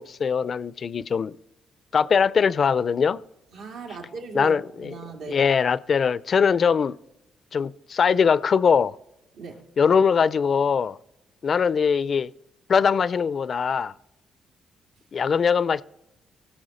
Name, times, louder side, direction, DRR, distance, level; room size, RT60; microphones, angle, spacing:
voice 1, 0.0-1.4 1.9-3.2 4.3-4.9 5.3-7.0 7.5-9.0 9.8-11.0 11.4-12.3 12.7-13.9 15.1-15.8, left 6 dB, 50° left, 0.4 m, -21 dB
voice 2, 3.5-5.5 9.3-9.6, right 4 dB, 85° right, 2.2 m, -38 dB
16.5 x 6.2 x 5.0 m
cardioid pair, 90°, 0 cm